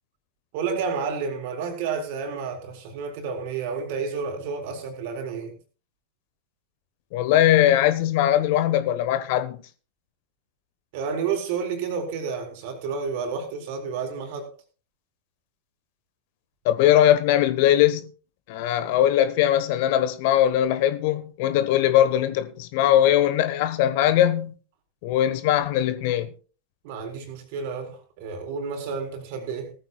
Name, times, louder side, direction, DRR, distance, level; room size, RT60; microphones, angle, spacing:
voice 1, 0.5-5.5 10.9-14.5 26.8-29.7, right 5 dB, 50° right, 4.0 m, -30 dB
voice 2, 7.1-9.6 16.6-18.1 18.5-24.5 25.0-26.3, left 12 dB, 50° left, 1.2 m, -20 dB
18.5 x 14.0 x 2.4 m
figure-of-eight pair, 90°, 0 cm